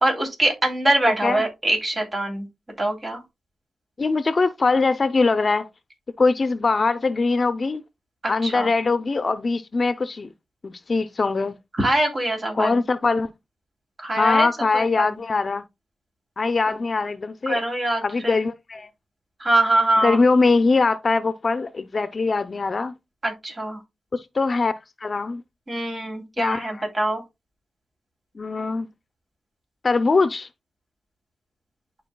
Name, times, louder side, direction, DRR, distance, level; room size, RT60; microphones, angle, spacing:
voice 1, 0.0-2.5 2.8-3.2 8.2-8.7 11.8-12.8 14.0-14.5 14.7-15.2 16.7-16.8 17.5-18.4 19.4-20.2 23.2-23.8 25.7-27.2, right 1 dB, 40° right, 3.1 m, -23 dB
voice 2, 4.0-5.7 6.2-7.8 8.3-10.3 10.6-11.6 12.5-13.3 14.2-15.6 16.4-17.6 18.0-18.9 20.0-22.9 24.1-24.7 25.0-25.4 26.4-26.7 28.4-28.9 29.8-30.5, left 3 dB, 50° left, 0.6 m, -22 dB
11.5 x 4.7 x 2.2 m
cardioid pair, 65°, 0 cm